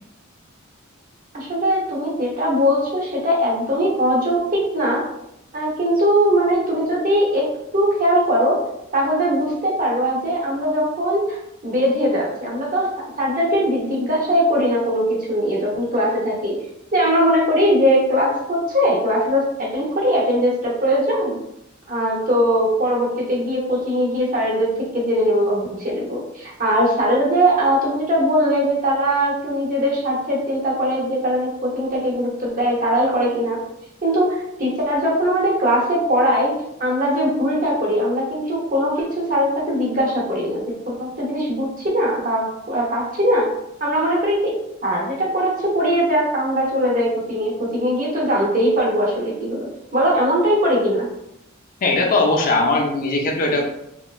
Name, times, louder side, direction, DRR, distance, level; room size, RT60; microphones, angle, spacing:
voice 1, 1.3-5.0 5.5-7.5 7.7-8.6 8.9-11.4 11.6-16.6 16.9-21.4 21.9-33.6 34.0-36.5 36.8-43.5 43.8-51.1, equal, 40° right, -3 dB, 0.7 m, -20 dB
voice 2, 51.8-53.6, left 2 dB, 40° left, 1 dB, 0.4 m, -19 dB
2.9 x 2.2 x 2.3 m, 0.80 s
head